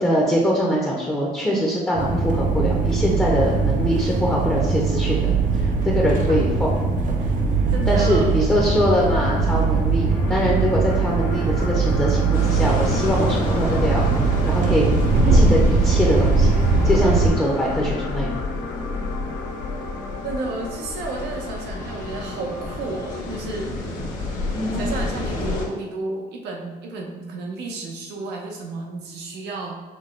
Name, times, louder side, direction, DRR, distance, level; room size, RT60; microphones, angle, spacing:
voice 1, 0.0-6.8 7.9-14.0 14.4-14.9 15.3-16.6 16.8-18.3 24.5-24.8, equal, 10° left, -4 dB, 0.7 m, -23 dB
sound 1, 1.9-17.3, right 4 dB, 50° right, 0.6 m, -20 dB
voice 2, 7.7-8.4 20.2-24.0 24.7-29.8, right 3 dB, 85° right, 1 dB, 0.8 m, -32 dB
sound 2, 10.1-23.4, left 2 dB, 85° left, 0.7 m, -34 dB
sound 3, 12.3-25.7, left 3 dB, 50° left, 1.2 m, -30 dB
5.7 x 2.2 x 3.2 m, 1.3 s
cardioid pair, 110°, 17 cm